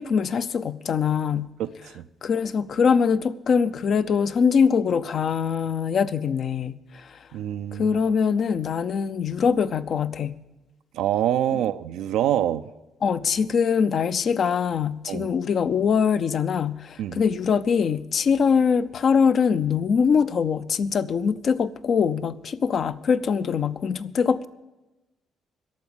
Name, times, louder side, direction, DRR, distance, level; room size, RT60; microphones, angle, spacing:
voice 1, 0.0-1.5 2.2-7.2 7.7-10.3 13.0-24.5, left 6 dB, 55° left, 0.5 m, -23 dB
voice 2, 7.3-8.0 10.9-12.7 15.1-15.3 17.0-17.2, right 11 dB, 90° right, 0.4 m, -25 dB
11.5 x 7.0 x 9.7 m
cardioid pair, 90°, 0 cm